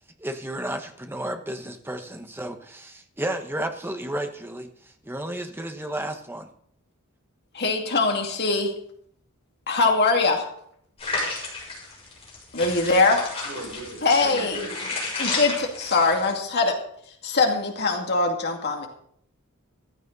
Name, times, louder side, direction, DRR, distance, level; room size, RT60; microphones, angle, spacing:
voice 1, 0.2-4.7 5.0-6.5, right 1 dB, 10° right, 5 dB, 1.1 m, -32 dB
voice 2, 7.5-8.7 9.7-10.5 12.5-13.3 14.0-14.6 15.2-16.8 17.2-18.9, left 3 dB, 50° left, 2 dB, 2.4 m, -22 dB
sound 1, 11.0-16.3, left 3 dB, 30° left, 7.0 m, -32 dB
voice 3, 13.4-15.1, right 1 dB, 75° right, -7 dB, 6.8 m, -38 dB
15.0 x 13.0 x 4.1 m, 0.67 s
head